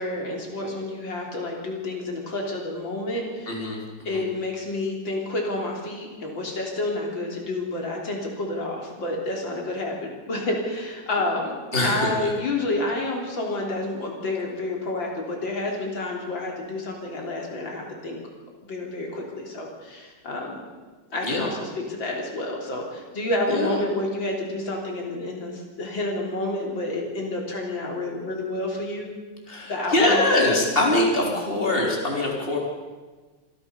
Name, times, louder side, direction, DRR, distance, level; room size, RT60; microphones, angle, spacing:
voice 1, 0.0-3.7 4.0-11.6 11.8-18.2 18.6-20.6 21.1-29.1 29.7-30.3, left 2 dB, 80° left, -1 dB, 4.3 m, -29 dB
voice 2, 3.5-3.8 4.1-4.2 11.7-12.0 12.2-12.3 21.2-21.5 23.5-23.7 29.5-32.6, left 2 dB, 30° left, -1 dB, 4.1 m, -23 dB
26.5 x 15.0 x 7.0 m, 1.3 s
omnidirectional pair, 2.1 m